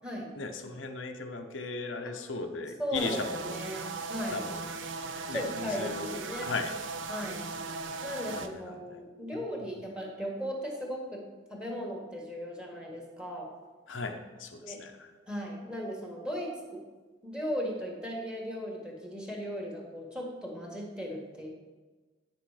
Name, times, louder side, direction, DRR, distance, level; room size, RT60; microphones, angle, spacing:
voice 1, 0.4-3.5 4.3-4.7 5.3-6.7 8.3-9.0 13.9-15.1, left 3 dB, 85° left, 5 dB, 0.8 m, -37 dB
voice 2, 2.8-4.4 5.3-6.5 7.1-7.4 8.0-13.5 14.6-14.9 15.3-16.8 17.2-21.5, equal, 5° right, -1 dB, 1.6 m, -37 dB
sound 1, 2.9-8.5, right 3 dB, 80° right, 0.6 m, -38 dB
9.2 x 6.0 x 5.0 m, 1.3 s
head